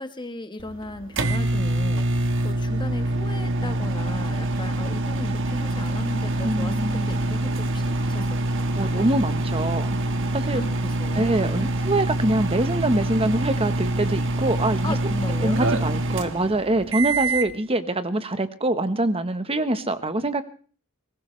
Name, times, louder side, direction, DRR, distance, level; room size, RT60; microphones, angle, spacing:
voice 1, 0.0-9.1 10.5-11.7 14.8-15.7, left 1 dB, 20° left, 9 dB, 1.3 m, -36 dB
sound 1, 0.6-17.5, right 1 dB, 60° right, 1.4 m, -25 dB
voice 2, 6.4-7.1 8.8-9.9 10.3-10.6 11.1-15.1 15.4-20.4, right 1 dB, 25° right, 11 dB, 1.1 m, -24 dB
21.5 x 19.5 x 3.3 m, 0.42 s
head